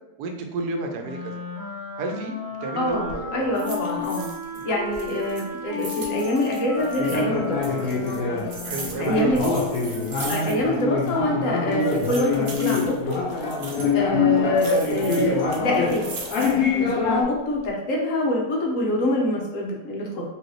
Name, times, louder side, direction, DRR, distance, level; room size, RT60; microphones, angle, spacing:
voice 1, 0.2-1.3 2.0-3.5 4.5-4.7 8.6-9.3, right 3 dB, 80° right, 3 dB, 1.2 m, -31 dB
Wind instrument woodwind instrument, 1.0-9.2, left 4 dB, 35° right, 1.1 m, -34 dB
voice 2, 2.7-4.3 4.6-7.7 9.0-9.4 10.3-13.2 13.9-16.1 16.7-20.2, left 1 dB, 60° left, -2 dB, 1.1 m, -25 dB
sound 1, 2.9-3.2 3.5-4.6 4.9-7.2 7.6-10.8 11.1-11.2 11.7-14.0 14.6-16.7 17.2-17.7, right 3 dB, 60° right, 0.5 m, -39 dB
sound 2, 6.7-17.2, left 4 dB, 80° left, 1.2 m, -25 dB
4.4 x 2.7 x 3.0 m, 0.92 s
omnidirectional pair, 1.7 m